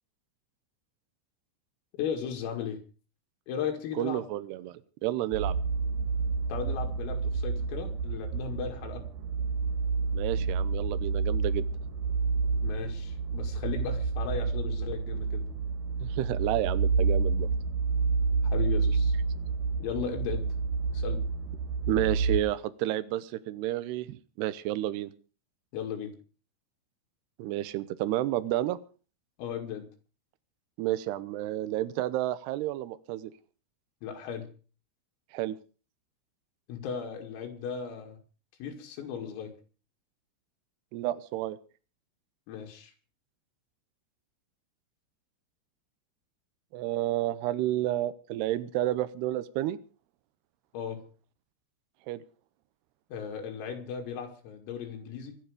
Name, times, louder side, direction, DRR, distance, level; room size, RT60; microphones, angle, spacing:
voice 1, 2.0-2.8 3.5-4.2 6.5-9.1 12.6-15.4 18.4-19.1 19.8-20.5 20.9-21.2 25.7-26.2 29.4-29.9 34.0-34.5 36.7-38.2 38.6-39.5 42.5-42.9 50.7-51.0 53.1-55.4, left 7 dB, 80° left, 3 dB, 4.8 m, -36 dB
voice 2, 4.0-5.6 10.1-11.7 16.0-17.5 21.9-25.1 27.4-28.8 30.8-33.3 35.3-35.6 40.9-41.6 46.7-49.8 52.1-52.2, right 14 dB, 85° right, 14 dB, 2.3 m, -31 dB
sound 1, 5.3-22.4, right 4 dB, 60° right, 2.3 m, -29 dB
25.0 x 9.3 x 5.0 m, 0.38 s
omnidirectional pair, 6.0 m